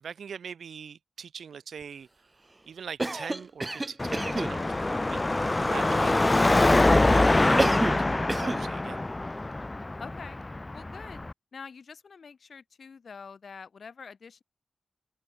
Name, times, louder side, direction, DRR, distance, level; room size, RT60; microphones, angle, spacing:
voice 1, 0.0-2.1 2.7-5.2 5.5-6.6 7.1-9.0, right 7 dB, 85° right, 2.9 m, -42 dB
Cough, 3.0-4.6 7.6-8.0 8.3-8.7, right 2 dB, 25° right, 0.3 m, -29 dB
Car passing by / Traffic noise roadway noise / Engine, 4.0-11.3, left 2 dB, 25° left, 0.9 m, -24 dB
voice 2, 10.0-10.4 10.7-11.2 11.5-14.4, left 5 dB, 70° left, 4.4 m, -45 dB
open air
cardioid pair, 60°, 0 cm